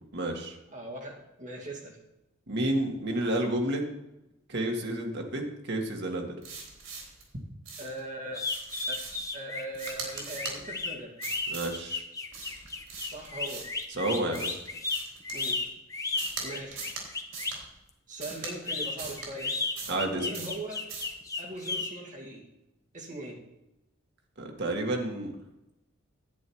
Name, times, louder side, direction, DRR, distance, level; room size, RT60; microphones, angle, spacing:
voice 1, 0.1-0.6 2.5-3.8 4.5-6.4 11.5-12.0 14.0-14.6 19.9-20.3 24.4-25.3, right 1 dB, 60° right, 2 dB, 1.8 m, -30 dB
voice 2, 0.7-2.0 7.8-8.4 8.9-9.0 9.3-11.1 13.1-13.7 15.3-15.6 16.4-16.9 18.1-19.6 20.1-20.8 21.3-22.5 22.9-23.4, right 1 dB, 40° right, -1 dB, 2.4 m, -40 dB
sound 1, 6.4-7.2 7.7-8.0 8.4-9.3 9.7-10.6 11.2-11.8 12.3-13.8 14.3-15.7 16.2-16.5 16.7-17.1 17.3-17.6 18.2-18.5 19.0-19.3 19.8-20.0 20.3-20.6 20.9-21.1, right 4 dB, 90° right, 3.5 m, -40 dB
sound 2, 8.3-17.6 18.4-21.9, left 3 dB, 15° left, 1.0 m, -34 dB
10.5 x 8.5 x 4.7 m, 0.93 s
head